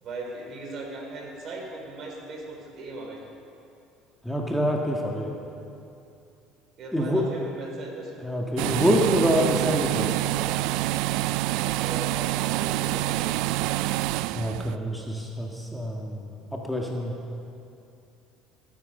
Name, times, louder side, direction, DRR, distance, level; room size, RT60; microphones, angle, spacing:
voice 1, 0.0-3.2 6.8-8.2 11.8-13.3, right 2 dB, 55° right, 1 dB, 3.6 m, -38 dB
voice 2, 4.2-5.3 6.9-7.2 8.2-10.1 14.3-17.1, equal, 5° left, -1 dB, 1.8 m, -26 dB
sound 1, 8.6-14.8, right 16 dB, 75° right, 0.3 m, -26 dB
18.0 x 9.4 x 5.5 m, 2.7 s
supercardioid pair, 85°, 0 cm